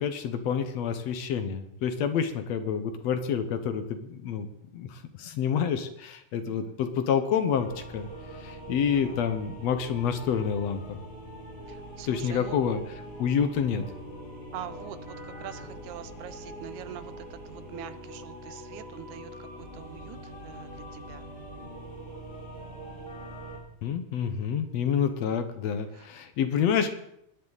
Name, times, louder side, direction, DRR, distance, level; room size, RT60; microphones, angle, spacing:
voice 1, 0.0-8.1 8.4-11.0 12.1-13.8 23.8-26.9, left 7 dB, 70° left, 9 dB, 2.1 m, -28 dB
voice 2, 6.5-6.8 8.9-9.2 11.7-12.6 14.5-19.5 19.7-20.2 20.4-21.3, right 11 dB, 85° right, 13 dB, 2.2 m, -44 dB
sound 1, 7.6-23.6, right 1 dB, 20° left, 4.3 m, -43 dB
20.0 x 10.5 x 4.1 m, 0.78 s
omnidirectional pair, 3.3 m